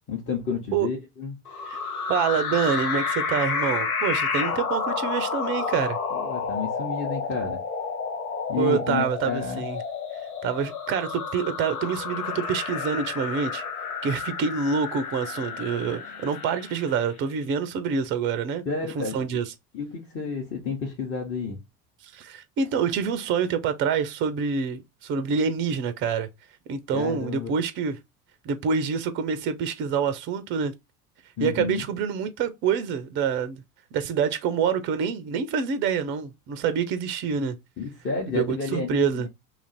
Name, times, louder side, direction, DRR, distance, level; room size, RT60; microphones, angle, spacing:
voice 1, 0.1-1.4 6.1-7.6 8.5-9.6 18.7-19.4 19.7-21.6 26.9-27.5 31.4-31.8 37.8-39.3, left 5 dB, 25° left, 0.9 m, -31 dB
sound 1, 1.5-17.1, left 5 dB, 75° left, 0.8 m, -30 dB
voice 2, 2.1-6.0 8.6-9.8 10.4-13.6 14.0-18.6 19.0-19.5 22.0-26.3 26.7-28.0 28.4-30.7 31.4-33.6 33.9-37.6 38.3-39.3, right 6 dB, 25° right, 0.5 m, -26 dB
2.9 x 2.5 x 4.2 m
figure-of-eight pair, 70°, 45 cm